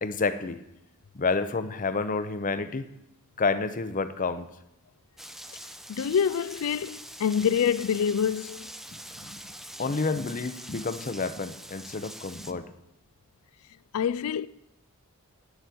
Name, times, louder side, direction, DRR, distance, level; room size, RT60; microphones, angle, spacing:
voice 1, 0.0-0.6 1.1-2.9 3.4-4.5 8.9-9.4 9.8-12.7, left 4 dB, 35° left, 0.7 m, -29 dB
Rain, 5.2-12.5, right 1 dB, ahead, 0.5 m, -44 dB
voice 2, 5.9-8.7 13.9-14.5, left 7 dB, 70° left, 0.4 m, -26 dB
9.2 x 8.0 x 8.4 m
head